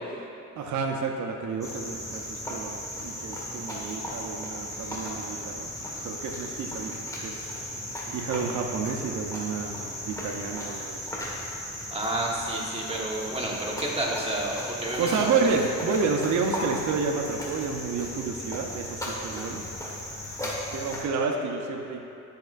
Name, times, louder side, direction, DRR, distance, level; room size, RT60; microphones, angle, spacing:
voice 1, 0.6-2.7 3.0-5.7 6.0-7.6 8.1-11.0 15.0-19.6 20.4-22.0, right 4 dB, 70° right, 2 dB, 0.8 m, -30 dB
Cricket, 1.6-21.0, left 1 dB, 10° left, 1.5 m, -36 dB
voice 2, 11.9-15.3, right 1 dB, 20° right, -4 dB, 1.4 m, -30 dB
10.5 x 6.1 x 2.5 m, 2.7 s
cardioid pair, 90°, 30 cm